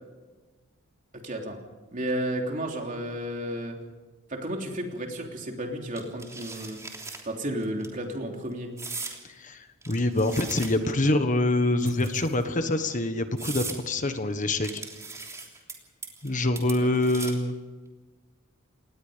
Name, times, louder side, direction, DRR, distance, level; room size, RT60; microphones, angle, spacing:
voice 1, 1.1-1.6 1.9-3.8 4.3-6.8 7.2-8.7 16.8-16.9, right 1 dB, 40° right, 2 dB, 3.3 m, -32 dB
sound 1, 6.0-7.2 7.6-7.9 8.8-9.2 9.8-11.0 11.8-12.4 12.9-13.0 13.4-13.8 14.6-15.7 16.0-16.3 16.6-17.5, right 4 dB, 15° right, 3.2 m, -38 dB
voice 2, 9.3-14.8 16.2-17.6, left 2 dB, 40° left, 8 dB, 1.4 m, -25 dB
27.5 x 19.5 x 5.2 m, 1.3 s
head